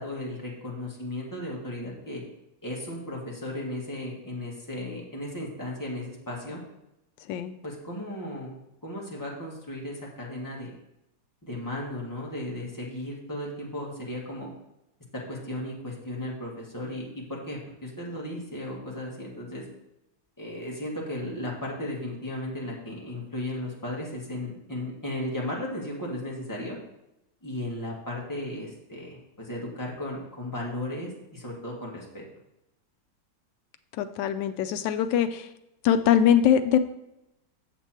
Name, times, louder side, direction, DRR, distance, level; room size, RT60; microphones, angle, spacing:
voice 1, 0.0-2.2 2.6-6.6 7.6-8.6 8.8-10.7 11.4-14.5 15.1-19.6 20.4-26.8 27.4-32.2, left 1 dB, 10° left, -4 dB, 1.8 m, -35 dB
voice 2, 34.0-35.5 35.8-36.8, left 9 dB, 80° left, 8 dB, 1.3 m, -22 dB
7.5 x 6.9 x 4.4 m, 0.88 s
omnidirectional pair, 1.9 m